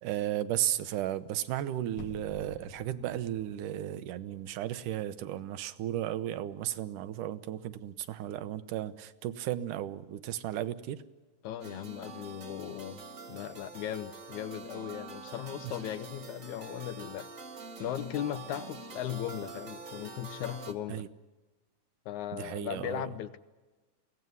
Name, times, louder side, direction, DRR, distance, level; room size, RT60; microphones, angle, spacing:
voice 1, 0.0-11.0 15.6-15.7 20.9-21.1 22.3-23.2, right 12 dB, 85° right, 13 dB, 2.5 m, -34 dB
sound 1, 1.9-4.8 5.2-5.3, left 4 dB, 55° left, 1.7 m, -51 dB
voice 2, 11.4-13.0 13.3-17.3 17.8-21.1 22.1-23.4, left 11 dB, 75° left, 12 dB, 2.2 m, -37 dB
sound 2, 11.6-20.7, right 4 dB, 35° right, 1.6 m, -45 dB
23.0 x 17.0 x 9.6 m, 1.2 s
omnidirectional pair, 3.6 m